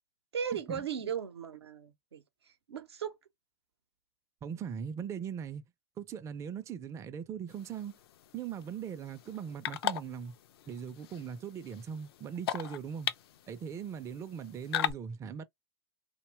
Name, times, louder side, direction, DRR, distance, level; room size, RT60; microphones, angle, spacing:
voice 1, 0.3-3.2, right 7 dB, 85° right, 0.6 m, -37 dB
voice 2, 4.4-5.6 6.0-8.0 8.3-10.3 10.7-13.1 13.5-15.4, right 7 dB, 20° right, 0.4 m, -40 dB
sound 1, 7.5-14.9, left 11 dB, 70° left, 0.4 m, -39 dB
2.6 x 2.2 x 3.0 m
hypercardioid pair, 95°, 13 cm